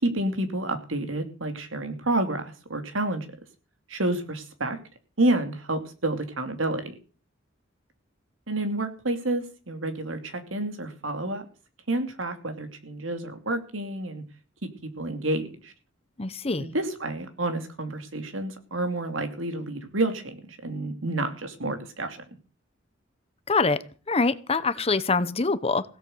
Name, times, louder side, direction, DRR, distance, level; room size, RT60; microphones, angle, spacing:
voice 1, 0.0-3.3 3.9-4.8 5.2-6.9 8.5-11.5 11.9-14.2 15.0-15.7 16.6-22.2, right 2 dB, 90° right, 7 dB, 2.8 m, -29 dB
voice 2, 16.2-16.7 23.5-23.8 24.1-25.8, left 3 dB, 30° left, 14 dB, 0.9 m, -24 dB
16.5 x 7.9 x 7.9 m, 0.37 s
head